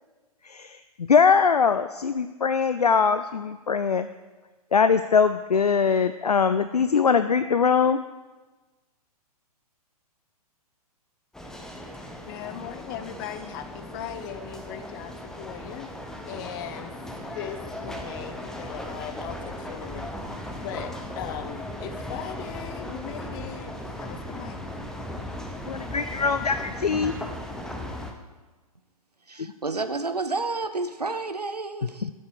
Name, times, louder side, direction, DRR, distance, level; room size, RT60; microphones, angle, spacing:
voice 1, 0.4-4.1 4.7-8.0 25.7-27.1 29.4-29.5 32.0-32.1, left 6 dB, 80° left, 12 dB, 0.5 m, -22 dB
sound 1, 11.3-28.1, left 1 dB, 5° left, 0.8 m, -37 dB
voice 2, 12.3-15.9 16.3-16.9 17.3-24.6, left 9 dB, 35° left, 11 dB, 0.7 m, -39 dB
voice 3, 29.3-32.1, right 3 dB, 85° right, 9 dB, 0.8 m, -30 dB
12.5 x 7.8 x 4.9 m, 1.2 s
figure-of-eight pair, 115°, 20 cm